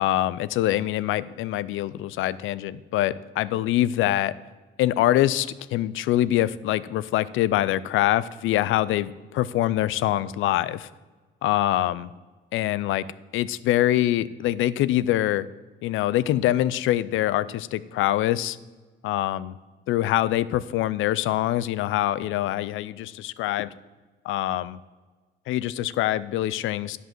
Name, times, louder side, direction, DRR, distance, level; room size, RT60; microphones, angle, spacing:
voice 1, 0.0-4.3 4.8-10.9 11.4-12.1 12.5-13.0 13.3-15.5 15.8-18.6 19.0-19.5 19.9-23.7 24.3-24.8 25.5-27.0, left 14 dB, 85° left, 18 dB, 0.4 m, -24 dB
10.0 x 5.5 x 7.4 m, 1.3 s
cardioid pair, 90°, 20 cm